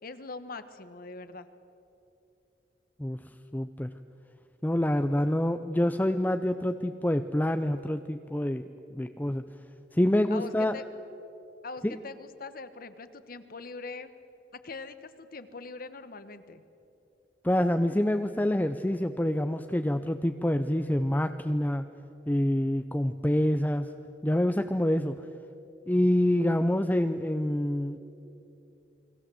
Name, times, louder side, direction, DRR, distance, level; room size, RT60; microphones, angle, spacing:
voice 1, 0.0-1.5 10.3-10.9 11.6-14.1 14.5-16.6, left 3 dB, 55° left, 11 dB, 1.3 m, -42 dB
voice 2, 3.5-3.9 4.6-8.6 8.9-9.5 9.9-10.7 11.8-11.9 17.4-21.9 22.3-23.9 24.2-25.3 25.9-28.0, left 1 dB, 10° left, 8 dB, 0.6 m, -26 dB
29.0 x 21.5 x 7.8 m, 2.9 s
head